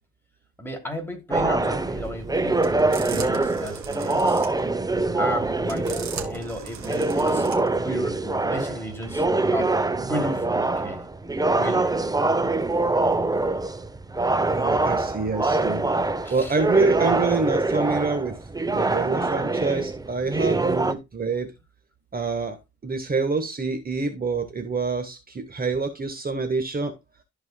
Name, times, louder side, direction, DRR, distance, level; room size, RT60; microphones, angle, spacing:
voice 1, 0.6-4.4 5.2-9.2 9.5-11.1 11.5-12.0 16.2-16.6, equal, 5° left, 3.0 m, -34 dB
sound 1, 1.3-20.9, right 2 dB, 10° right, 0.8 m, -24 dB
sound 2, 1.8-7.8, right 7 dB, 65° right, 2.3 m, -39 dB
voice 2, 14.5-15.8 16.3-18.4 18.7-21.5 22.1-22.6 22.8-26.9, right 4 dB, 30° right, 1.5 m, -26 dB
14.5 x 4.9 x 2.3 m
cardioid pair, 90°, 30 cm